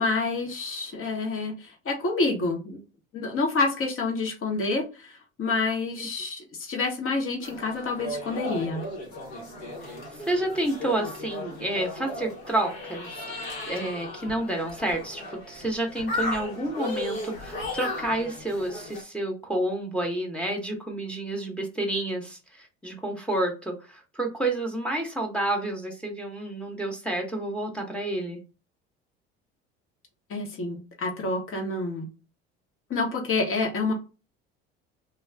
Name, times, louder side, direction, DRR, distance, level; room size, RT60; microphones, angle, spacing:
voice 1, 0.0-2.8 3.1-8.8 30.3-32.1 32.9-33.9, left 3 dB, 45° left, 2 dB, 1.1 m, -28 dB
sound 1, 7.4-19.0, left 2 dB, 85° left, 1.2 m, -36 dB
voice 2, 10.2-28.4, right 1 dB, 5° left, 2 dB, 0.9 m, -30 dB
2.5 x 2.3 x 3.2 m, 0.32 s
hypercardioid pair, 70°, 31 cm